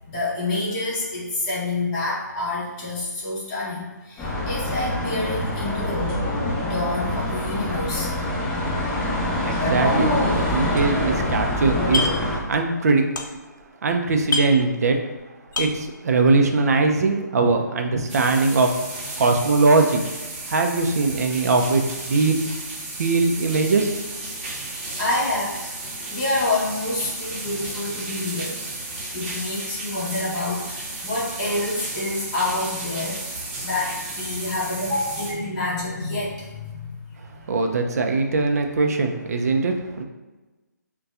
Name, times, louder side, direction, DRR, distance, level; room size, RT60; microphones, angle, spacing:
voice 1, 0.1-6.2 6.6-8.1 24.6-28.6 29.1-33.2 33.6-37.0 37.3-37.5, left 2 dB, 25° left, -8 dB, 1.1 m, -28 dB
sound 1, 4.2-12.4, left 1 dB, 5° left, 0.8 m, -25 dB
voice 2, 9.4-12.1 12.5-13.0 13.8-15.0 15.6-18.7 19.2-20.0 20.5-22.4 23.0-24.0 37.5-40.0, right 3 dB, 55° right, 4 dB, 0.5 m, -21 dB
sound 2, 10.8-11.4 11.7-12.4 12.7-13.6 13.9-14.0 14.2-15.2 15.5-15.9, left 3 dB, 85° left, 0.5 m, -28 dB
sound 3, 18.1-35.3, right 2 dB, 30° right, 0.8 m, -34 dB
4.0 x 2.2 x 2.4 m, 1.2 s
figure-of-eight pair, 155°, 10 cm